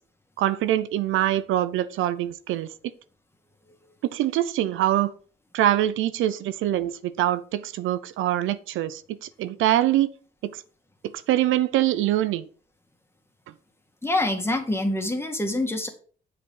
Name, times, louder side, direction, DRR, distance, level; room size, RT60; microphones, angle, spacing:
voice 1, 0.4-2.7 4.1-5.1 5.5-10.1 10.4-10.6 11.0-12.5, right 13 dB, 85° right, 0.6 m, -24 dB
voice 2, 14.0-15.9, left 2 dB, 10° left, 1.9 m, -26 dB
7.4 x 5.0 x 5.6 m
cardioid pair, 90°, 20 cm